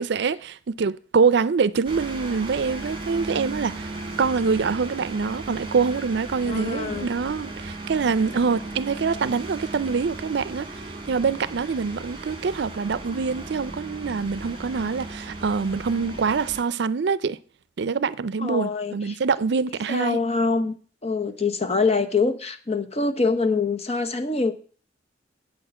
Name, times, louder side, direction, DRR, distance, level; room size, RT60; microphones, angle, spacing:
voice 1, 0.0-3.9 4.2-10.7 11.1-17.4 17.8-20.2, right 5 dB, 70° right, 0.5 m, -25 dB
sound 1, 1.9-16.6, right 2 dB, 30° right, 2.2 m, -36 dB
voice 2, 6.5-7.1 18.4-19.2 19.9-20.7 21.0-24.5, left 4 dB, 35° left, 0.9 m, -24 dB
8.2 x 6.6 x 7.8 m
head